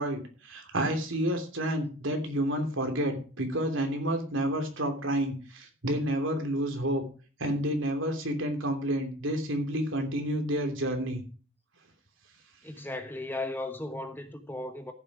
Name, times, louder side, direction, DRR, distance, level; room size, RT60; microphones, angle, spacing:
voice 1, 0.0-7.0 7.4-11.2, right 1 dB, 70° right, 3.1 m, -30 dB
voice 2, 12.6-14.9, left 2 dB, 10° left, 1.1 m, -36 dB
15.0 x 7.5 x 4.9 m
head